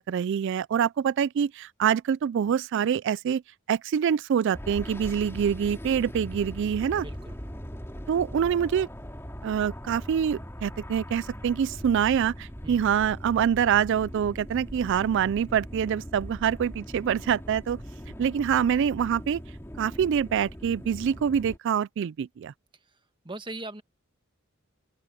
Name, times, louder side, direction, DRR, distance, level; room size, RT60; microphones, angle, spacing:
voice 1, 0.0-3.4 3.7-7.0 8.1-8.9 9.4-17.8 18.2-19.4 19.8-22.5, right 8 dB, 60° right, 0.3 m, -25 dB
sound 1, 4.5-21.6, equal, 10° left, 3.6 m, -40 dB
voice 2, 7.0-7.4 12.6-12.8 23.2-23.8, right 2 dB, 25° right, 1.3 m, -39 dB
open air
head